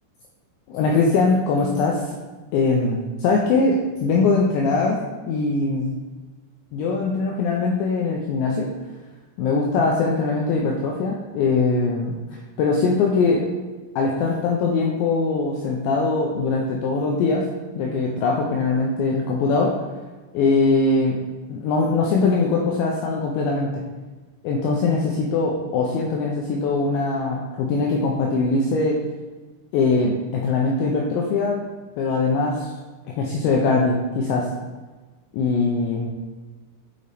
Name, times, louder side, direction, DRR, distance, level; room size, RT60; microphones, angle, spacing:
voice 1, 0.7-2.2 2.5-6.0 6.7-8.7 9.4-12.2 12.6-13.5 14.0-17.5 17.8-19.8 20.3-23.8 24.4-29.0 29.7-31.6 32.0-32.7 33.2-34.5 35.3-36.1, left 3 dB, 85° left, -1 dB, 2.6 m, -21 dB
8.8 x 5.2 x 3.4 m, 1.3 s
omnidirectional pair, 5.8 m